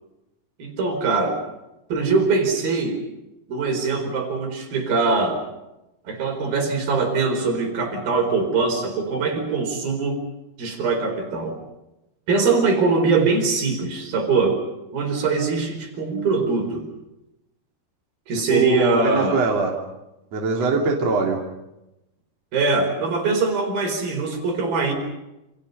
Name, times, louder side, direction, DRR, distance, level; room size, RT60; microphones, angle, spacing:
voice 1, 0.6-1.4 1.9-3.0 3.5-5.4 6.1-10.2 10.6-11.6 12.3-14.6 14.9-16.9 18.3-19.4 22.5-24.9, right 4 dB, 75° right, 4 dB, 6.3 m, -22 dB
voice 2, 18.5-19.8 20.3-21.4, right 4 dB, 45° right, 0 dB, 3.8 m, -22 dB
28.5 x 27.5 x 5.4 m, 0.93 s
omnidirectional pair, 4.2 m